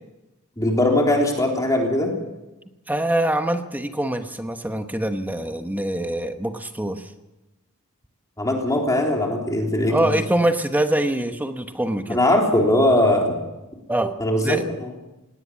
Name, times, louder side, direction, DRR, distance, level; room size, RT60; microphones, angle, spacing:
voice 1, 0.6-2.1 8.4-10.1 12.1-13.3 14.2-14.9, left 1 dB, 15° left, 0 dB, 3.6 m, -20 dB
voice 2, 2.9-7.1 9.9-12.2 13.9-14.2 14.4-14.7, right 1 dB, 10° right, 7 dB, 1.1 m, -24 dB
19.0 x 17.5 x 8.6 m, 1.0 s
head